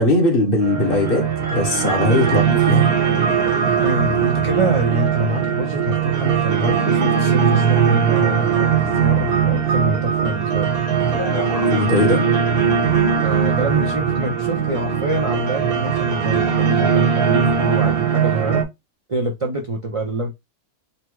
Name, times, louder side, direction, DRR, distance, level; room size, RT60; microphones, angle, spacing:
voice 1, 0.0-2.9 11.1-12.2, left 1 dB, 40° left, 1.4 m, -20 dB
sound 1, 0.6-18.6, right 7 dB, 80° right, 1.6 m, -19 dB
voice 2, 3.8-10.7 13.2-18.7 19.1-20.3, right 1 dB, 40° right, 0.4 m, -25 dB
4.1 x 2.1 x 4.6 m
omnidirectional pair, 1.5 m